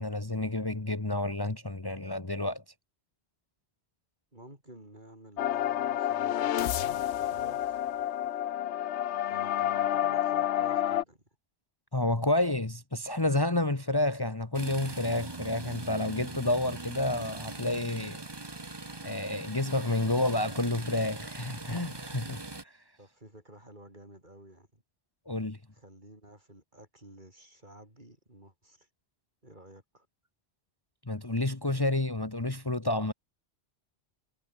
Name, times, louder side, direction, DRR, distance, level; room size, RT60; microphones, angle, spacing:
voice 1, 0.0-2.6 11.9-18.2 19.0-22.7 25.3-25.6 31.1-33.1, left 2 dB, 20° left, 1.5 m, -30 dB
voice 2, 4.3-7.8 9.2-11.2 23.0-24.8 25.7-28.9 29.4-30.1, right 1 dB, 45° right, 7.0 m, -52 dB
sound 1, 5.4-11.0, left 11 dB, 90° left, 1.0 m, -29 dB
sound 2, 14.5-22.6, right 2 dB, 25° right, 1.3 m, -41 dB
omnidirectional pair, 1.1 m